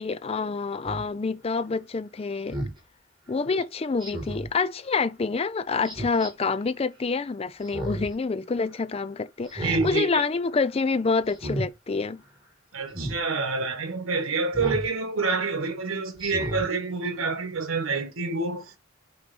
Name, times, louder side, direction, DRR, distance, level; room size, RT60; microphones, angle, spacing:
voice 1, 0.0-2.6 3.3-12.2, left 4 dB, 30° left, 0.4 m, -27 dB
Speech synthesizer, 0.8-1.0 2.5-2.8 4.0-4.5 5.8-6.3 7.6-8.1 8.5-8.6 9.4-10.0 10.3-10.6 11.3-11.7 12.9-13.2 14.5-14.9 15.4-15.5 16.2-16.7 17.1-17.2, right 1 dB, 20° right, 2.7 m, -33 dB
voice 2, 9.6-10.2 12.7-18.8, right 4 dB, 85° right, 1.2 m, -27 dB
8.2 x 3.0 x 4.1 m
head